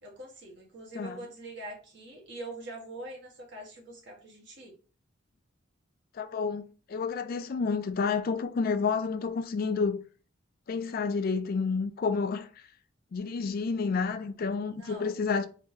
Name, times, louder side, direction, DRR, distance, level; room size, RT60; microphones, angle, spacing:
voice 1, 0.0-4.7 14.8-15.1, right 1 dB, 60° right, 1.3 m, -44 dB
voice 2, 6.1-10.0 10.7-12.5 13.1-15.5, left 5 dB, 50° left, 0.3 m, -30 dB
3.3 x 2.7 x 3.1 m
head